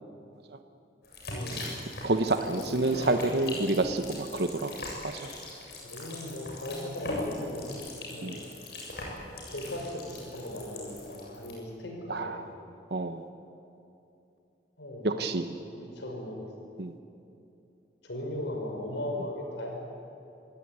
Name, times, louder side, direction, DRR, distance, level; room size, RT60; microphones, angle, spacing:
sound 1, 1.0-11.5, left 1 dB, 60° left, 7.5 m, -40 dB
voice 1, 1.3-1.7 2.5-3.3 5.8-7.7 8.1-8.4 9.5-12.4 14.8-15.3 15.7-16.5 18.0-19.8, left 1 dB, 80° left, 1 dB, 5.5 m, -38 dB
voice 2, 2.0-4.7 5.1-5.2 8.2-8.4 12.1-12.4 12.9-13.2 15.0-15.4 16.8-16.9, right 2 dB, 65° right, 7 dB, 1.1 m, -28 dB
27.0 x 17.0 x 9.6 m, 2.8 s
head